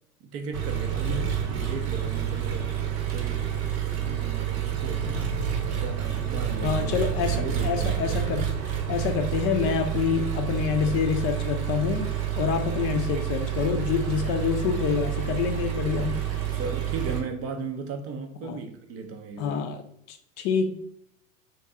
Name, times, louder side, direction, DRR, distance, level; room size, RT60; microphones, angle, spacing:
voice 1, 0.2-2.7 3.1-3.5 3.8-5.4 5.7-7.0 7.3-8.0 16.5-19.7, right 4 dB, 35° right, 0.5 m, -36 dB
Engine, 0.5-17.2, right 9 dB, 70° right, 0.9 m, -29 dB
voice 2, 6.6-8.5 8.9-12.1 12.4-16.2 18.4-18.6 19.4-19.8 20.1-20.7, left 7 dB, 40° left, 0.4 m, -27 dB
3.1 x 2.7 x 3.4 m
hypercardioid pair, 95°, 45 cm